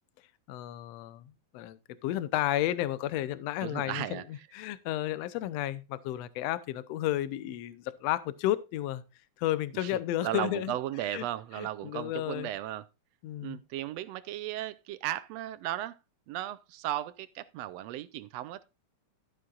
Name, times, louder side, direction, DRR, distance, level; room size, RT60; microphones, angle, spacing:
voice 1, 0.5-4.2 4.5-9.0 9.4-10.7 11.1-11.2 11.6-12.5 13.2-13.6, left 13 dB, 70° left, 1.7 m, -32 dB
voice 2, 3.6-4.5 9.7-12.9 13.4-16.0 16.3-18.6, right 13 dB, 80° right, 1.5 m, -36 dB
12.5 x 9.6 x 2.4 m
omnidirectional pair, 3.4 m